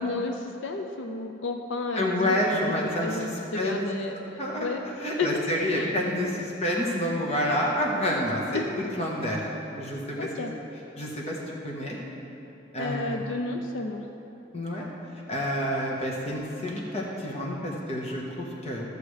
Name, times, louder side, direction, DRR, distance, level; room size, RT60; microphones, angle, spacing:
voice 1, 0.0-2.3 3.0-4.8 5.2-5.3 5.6-5.9 8.5-8.7 10.2-10.5 12.8-14.0, left 3 dB, 85° left, 4 dB, 0.5 m, -32 dB
voice 2, 1.9-3.8 4.4-4.7 5.0-9.5 9.8-10.3 11.0-11.4 11.6-12.0 12.7-13.2 14.5-14.9 15.3-18.8, left 1 dB, 35° left, -2 dB, 1.3 m, -28 dB
14.5 x 6.8 x 3.3 m, 3.0 s
head